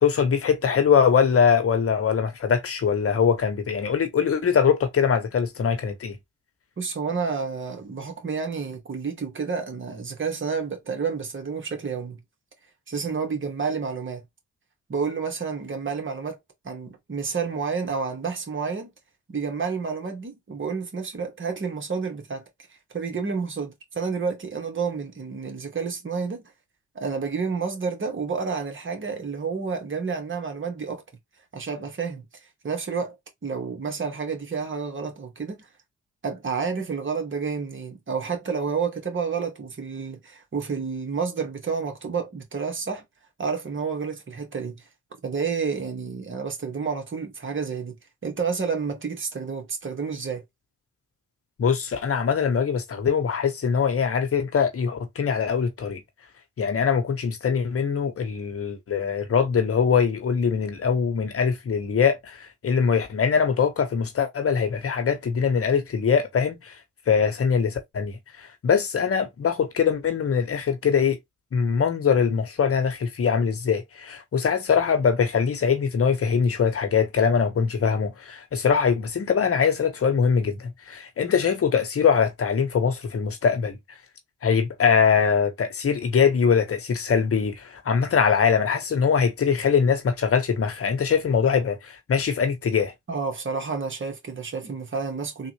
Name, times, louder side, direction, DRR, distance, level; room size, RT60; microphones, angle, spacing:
voice 1, 0.0-6.2 51.6-56.0 56.6-66.7 67.1-71.2 71.5-83.8 84.4-92.9, left 6 dB, 50° left, 1.1 m, -22 dB
voice 2, 6.8-12.2 12.9-14.2 14.9-16.4 16.6-18.9 19.3-22.4 22.9-26.4 27.0-31.0 31.5-32.3 32.6-33.2 33.4-35.7 36.2-43.0 43.4-44.8 45.2-47.9 48.2-50.4 93.1-95.5, right 5 dB, 40° right, 1.7 m, -30 dB
3.6 x 2.5 x 3.0 m
supercardioid pair, 60°, 30 cm